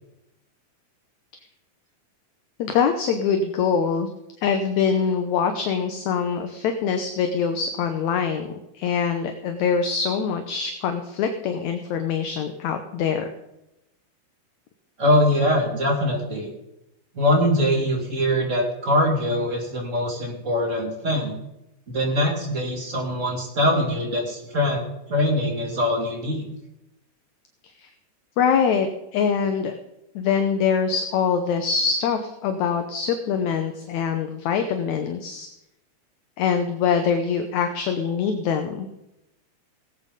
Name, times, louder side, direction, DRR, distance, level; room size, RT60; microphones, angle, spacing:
voice 1, 2.6-4.1 4.4-13.3 27.8-27.9 28.4-28.9 29.1-29.8 30.2-35.5 36.4-38.9, left 6 dB, 70° left, 7 dB, 2.1 m, -24 dB
voice 2, 15.0-16.5 17.1-21.3 21.9-26.4, left 1 dB, 25° right, -1 dB, 2.9 m, -23 dB
17.5 x 8.8 x 5.3 m, 0.88 s
omnidirectional pair, 3.7 m